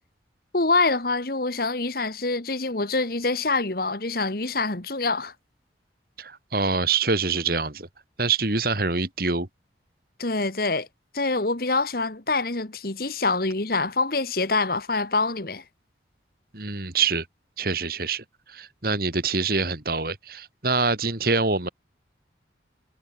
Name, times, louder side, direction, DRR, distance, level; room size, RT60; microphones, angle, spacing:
voice 1, 0.5-5.3 10.2-10.9 11.1-15.6, left 3 dB, 55° left, 1.7 m, -25 dB
voice 2, 6.2-7.9 8.2-9.5 16.5-17.2 17.6-18.2 18.5-21.7, right 4 dB, 50° right, 2.7 m, -25 dB
head